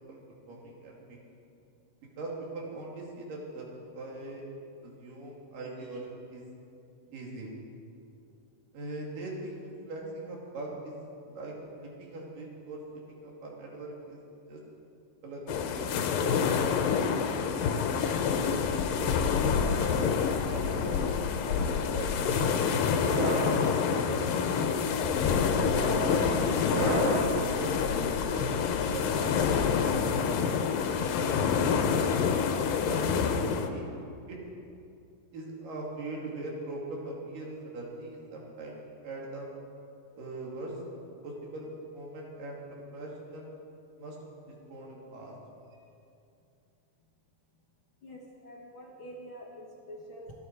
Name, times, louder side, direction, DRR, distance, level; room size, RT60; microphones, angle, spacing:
voice 1, 0.5-1.2 2.2-3.7 3.9-4.4 4.8-6.5 7.1-7.5 8.7-9.6 9.9-12.8 13.1-14.2 14.5-14.6 15.2-16.3 16.6-19.1 19.4-21.0 21.5-23.4 23.9-24.2 24.5-26.3 26.8-28.0 28.3-30.4 30.7-32.3 32.9-33.9 34.3-34.4 35.3-39.5 40.2-40.7 41.2-43.5 44.0-44.2 44.5-45.3, right 2 dB, 75° right, -2 dB, 4.1 m, -41 dB
sound 1, 15.5-33.7, left 6 dB, 90° left, 2.6 m, -27 dB
sound 2, 19.5-20.9 21.7-22.1 22.9-23.6 24.3-24.6 25.5-27.4, right 2 dB, 55° right, 3.4 m, -34 dB
voice 2, 48.0-50.4, equal, 55° left, -2 dB, 1.5 m, -46 dB
25.5 x 10.5 x 4.7 m, 2.6 s
omnidirectional pair, 3.9 m